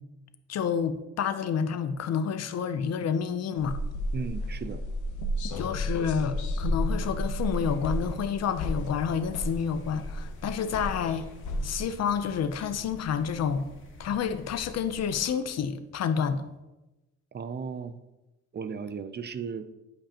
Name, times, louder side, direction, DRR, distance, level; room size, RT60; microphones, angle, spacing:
voice 1, 0.5-3.8 5.6-11.3 11.6-13.7 14.0-16.4, left 7 dB, 60° left, 0.6 m, -29 dB
sound 1, 3.6-11.8, equal, 80° left, 1.0 m, -32 dB
voice 2, 4.1-4.8 17.3-18.0 18.5-19.7, right 6 dB, 35° right, 0.5 m, -35 dB
sound 2, 6.9-15.3, left 1 dB, 40° left, 1.4 m, -48 dB
11.0 x 5.2 x 2.9 m
cardioid pair, 90°, 30 cm